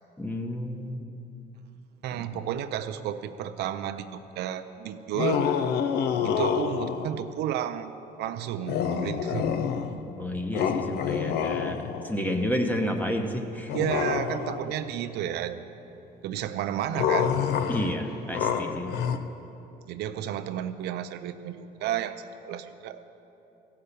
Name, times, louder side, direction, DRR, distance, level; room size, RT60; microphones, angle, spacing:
voice 1, 0.2-1.1 6.1-6.4 10.2-11.8 12.0-13.7 17.7-18.9, equal, 10° left, 4 dB, 1.0 m, -30 dB
voice 2, 2.0-5.5 6.2-7.9 8.2-9.5 13.7-15.6 16.2-17.3 19.9-23.0, right 10 dB, 75° right, 9 dB, 0.5 m, -32 dB
sound 1, 5.1-7.2 8.7-10.1 10.5-12.2 13.7-14.8 16.9-19.2, left 7 dB, 70° left, 0.6 m, -27 dB
15.0 x 5.7 x 6.7 m, 3.0 s
cardioid pair, 110°, 17 cm